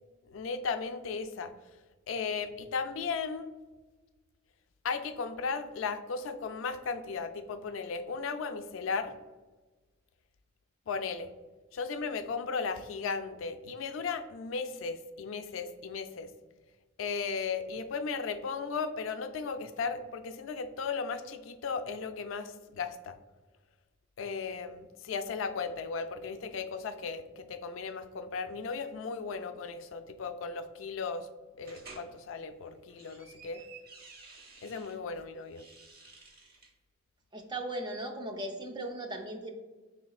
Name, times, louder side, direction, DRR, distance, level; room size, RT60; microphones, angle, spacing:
voice 1, 0.3-1.5 2.1-3.5 4.8-9.1 10.9-11.3 11.7-16.3 17.0-23.2 24.2-31.3 31.6-33.6 34.6-35.6, left 5 dB, 70° left, 9 dB, 0.3 m, -36 dB
sound 1, 31.6-32.1 32.7-35.0 35.4-36.7, right 4 dB, 50° right, 0.9 m, -52 dB
voice 2, 37.3-39.5, right 1 dB, 20° right, 4 dB, 0.4 m, -37 dB
5.0 x 3.8 x 2.3 m, 1.3 s
head